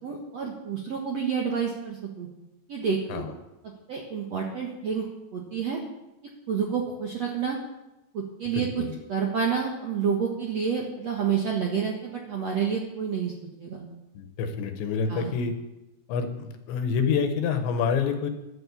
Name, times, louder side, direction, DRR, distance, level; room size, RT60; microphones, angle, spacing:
voice 1, 0.0-2.3 2.7-3.2 3.9-5.0 5.3-5.8 6.5-7.6 8.1-8.8 9.1-13.3 13.6-13.8 15.1-15.3, right 6 dB, 85° right, -1 dB, 1.4 m, -29 dB
voice 2, 8.5-9.0 14.1-15.5 16.1-18.3, left 6 dB, 70° left, 7 dB, 3.2 m, -27 dB
13.0 x 11.5 x 8.5 m, 0.96 s
omnidirectional pair, 5.9 m